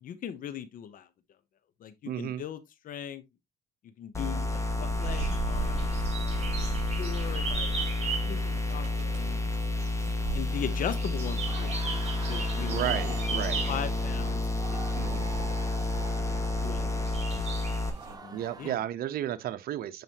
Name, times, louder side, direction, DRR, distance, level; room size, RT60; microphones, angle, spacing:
voice 1, 0.0-1.1 1.8-3.2 3.8-6.0 6.6-9.4 10.3-12.0 12.3-13.0 13.3-14.4 14.7-14.8 16.6-17.1 18.1-18.8, left 9 dB, 55° left, 0.8 m, -39 dB
voice 2, 2.1-2.4 12.7-13.6 15.0-15.3 18.3-20.0, right 12 dB, 65° right, 0.9 m, -33 dB
sound 1, 4.1-17.9, left 2 dB, 15° left, 1.5 m, -30 dB
sound 2, 4.3-18.1, right 5 dB, 40° right, 4.7 m, -37 dB
sound 3, 11.5-18.8, right 4 dB, 20° right, 1.3 m, -46 dB
9.3 x 5.0 x 2.9 m
cardioid pair, 110°, 17 cm